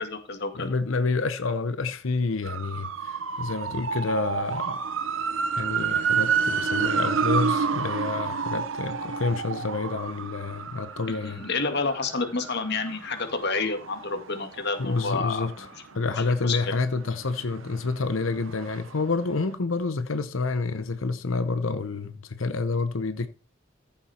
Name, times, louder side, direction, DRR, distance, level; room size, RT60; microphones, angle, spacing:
voice 1, 0.0-0.7 11.1-15.5 16.2-16.6, left 4 dB, 55° left, 2.0 m, -29 dB
voice 2, 0.5-4.8 5.5-11.5 14.8-15.7 15.9-23.3, left 3 dB, 85° left, 0.8 m, -28 dB
sound 1, 2.4-16.2 16.6-19.1 19.4-19.5, right 6 dB, 80° right, 0.9 m, -30 dB
14.5 x 7.3 x 4.3 m
head